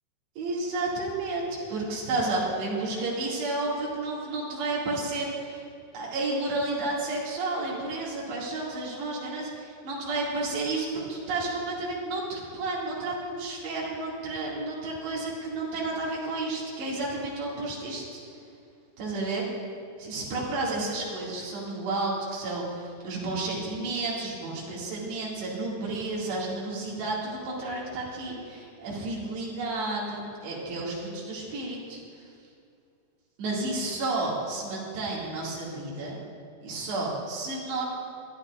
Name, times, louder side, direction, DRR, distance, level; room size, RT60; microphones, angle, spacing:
voice 1, 0.4-5.6 5.9-18.4 19.0-19.5 20.0-32.0 33.4-36.2 36.6-37.8, right 2 dB, 80° right, -6 dB, 4.7 m, -31 dB
22.5 x 12.0 x 2.6 m, 2.4 s
omnidirectional pair, 4.8 m